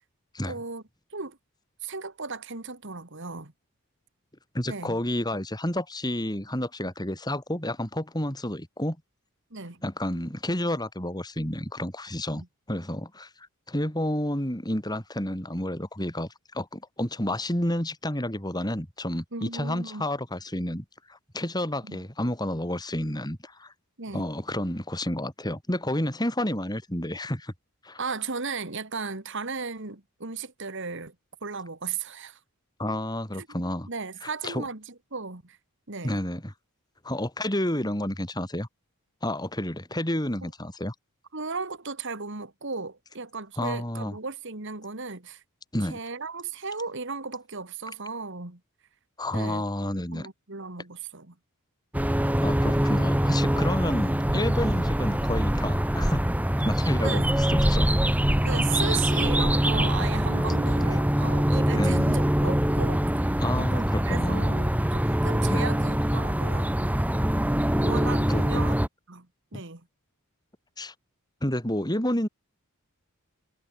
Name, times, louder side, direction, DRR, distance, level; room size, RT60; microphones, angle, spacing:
voice 1, 0.5-0.8 1.1-1.4 1.8-3.5 4.7-5.0 9.5-9.8 12.3-12.5 19.3-20.0 21.9-22.0 24.0-24.3 28.0-31.1 31.4-32.4 33.4-33.5 33.9-35.6 35.9-36.2 41.3-45.4 45.9-48.6 49.3-49.6 50.1-51.3 57.0-57.3 58.4-63.3 63.6-66.7 67.8-68.8 69.1-69.3 69.5-69.8, right 4 dB, 55° right, 2.2 m, -35 dB
voice 2, 4.5-9.0 9.8-23.7 24.1-27.5 27.8-28.0 32.8-33.9 34.2-34.6 36.0-36.5 37.0-38.7 39.2-40.9 43.6-44.2 45.7-46.0 49.2-50.3 52.4-56.3 56.6-57.9 58.9-59.0 60.8-61.0 61.7-62.0 63.4-64.5 65.5-65.7 68.3-68.6 69.5-69.6 70.8-70.9 71.4-72.3, left 1 dB, 20° left, 5.6 m, -30 dB
sound 1, 51.9-68.9, equal, 5° right, 1.3 m, -24 dB
head